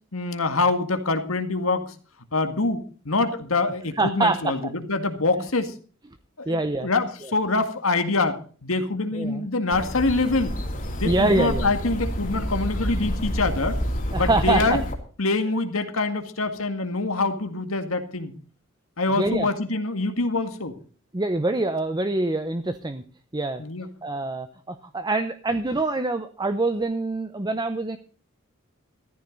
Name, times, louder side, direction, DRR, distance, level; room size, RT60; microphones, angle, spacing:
voice 1, 0.1-1.9 2.3-5.7 6.4-10.6 10.9-13.8 14.2-14.8 15.2-18.3 19.0-20.7 23.6-23.9, left 3 dB, 80° left, 8 dB, 2.0 m, -25 dB
voice 2, 4.0-4.5 5.4-5.5 6.5-6.9 9.1-9.5 11.0-11.7 14.1-14.8 19.2-19.5 21.1-23.0 23.3-23.6 24.0-28.0, right 2 dB, 20° right, 9 dB, 0.8 m, -25 dB
sound 1, 9.7-14.9, equal, 40° left, 3.1 m, -28 dB
14.5 x 14.0 x 4.0 m, 0.41 s
head